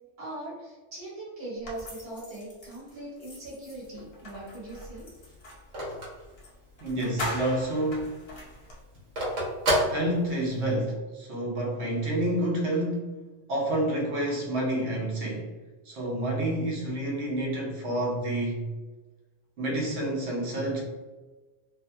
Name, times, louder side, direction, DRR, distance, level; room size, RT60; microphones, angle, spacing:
voice 1, 0.2-5.1, right 1 dB, 30° right, -7 dB, 1.0 m, -40 dB
sound 1, 1.6-5.7 6.4-6.5 6.8-8.8, left 1 dB, 45° left, 0.5 m, -40 dB
Telephone, 3.7-7.1 7.5-7.6 7.9-10.7, right 1 dB, 90° right, 1.2 m, -30 dB
voice 2, 6.8-8.1 9.9-13.2 13.5-15.5 15.9-18.7 19.6-20.8, right 1 dB, 70° right, -2 dB, 1.0 m, -29 dB
2.6 x 2.2 x 2.6 m, 1.2 s
omnidirectional pair, 1.2 m